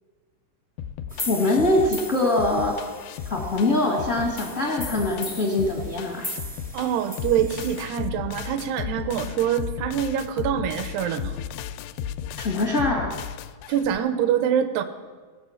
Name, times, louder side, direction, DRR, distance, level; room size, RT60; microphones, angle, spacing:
sound 1, 0.8-14.0, left 9 dB, 90° left, 2.6 m, -35 dB
sound 2, 1.1-7.9, left 1 dB, 10° right, 0.4 m, -38 dB
voice 1, 1.3-2.8 3.2-6.3 12.4-13.1, left 2 dB, 70° left, -2 dB, 0.7 m, -23 dB
voice 2, 6.7-11.4 13.7-14.8, right 9 dB, 85° right, 11 dB, 2.9 m, -25 dB
18.5 x 7.6 x 6.3 m, 1.5 s
omnidirectional pair, 4.6 m